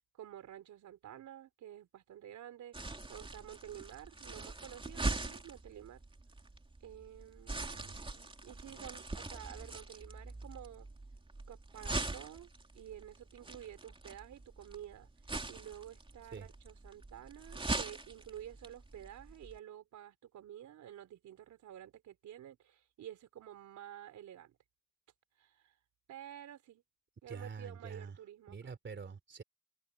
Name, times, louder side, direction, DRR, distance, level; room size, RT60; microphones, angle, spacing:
voice 1, 0.1-6.0 6.8-10.9 11.5-12.5 12.7-15.1 15.5-24.6 25.4-25.7 26.1-26.8 27.2-28.6, right 11 dB, 70° right, 4.2 m, -51 dB
sound 1, 2.7-19.6, right 2 dB, 15° right, 3.0 m, -42 dB
voice 2, 27.3-28.2 28.5-29.4, right 5 dB, 40° right, 3.5 m, -46 dB
open air
cardioid pair, 90°, 30 cm